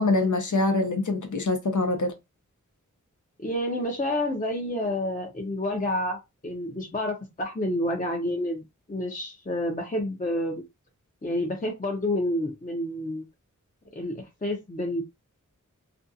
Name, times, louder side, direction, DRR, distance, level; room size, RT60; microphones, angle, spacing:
voice 1, 0.0-2.1, left 2 dB, 70° left, 0.7 m, -24 dB
voice 2, 3.4-6.2 6.4-10.5 11.2-13.2 13.9-15.0, left 1 dB, 25° left, 0.6 m, -29 dB
2.5 x 2.3 x 2.6 m
wide cardioid pair, 45°, 31 cm